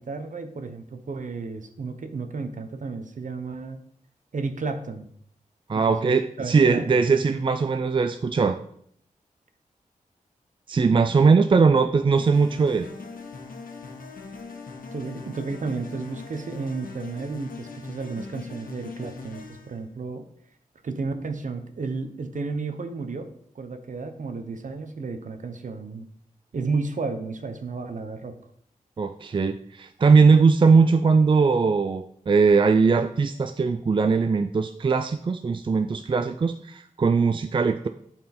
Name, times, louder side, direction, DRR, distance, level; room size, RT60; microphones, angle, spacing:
voice 1, 0.0-3.8 4.3-5.1 5.7-7.0 14.9-20.3 20.8-23.2 23.5-26.1 26.5-28.3, right 4 dB, 65° right, 8 dB, 1.0 m, -32 dB
voice 2, 5.7-8.6 10.7-12.9 29.0-37.9, right 4 dB, 35° right, 9 dB, 0.4 m, -20 dB
sound 1, 12.2-19.8, left 4 dB, 80° left, 1.4 m, -41 dB
11.5 x 4.5 x 4.3 m, 0.66 s
wide cardioid pair, 110°, 14 cm